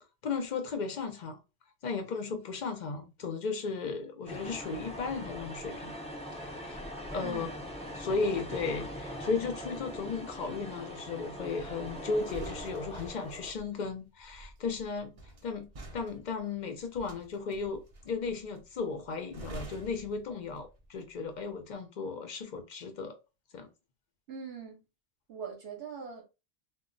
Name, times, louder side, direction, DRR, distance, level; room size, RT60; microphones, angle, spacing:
voice 1, 0.2-1.4 1.8-6.0 6.3-6.8 7.1-7.5 7.9-15.7 15.9-23.2 23.5-23.7, left 4 dB, 55° left, 0.6 m, -35 dB
sound 1, 4.3-13.5, equal, 10° left, 0.5 m, -41 dB
sound 2, 11.6-20.9 21.2-21.5, right 1 dB, 45° right, 0.5 m, -48 dB
voice 2, 24.3-24.8 25.3-26.2, right 6 dB, 65° right, 0.9 m, -41 dB
2.2 x 2.0 x 3.7 m
omnidirectional pair, 1.1 m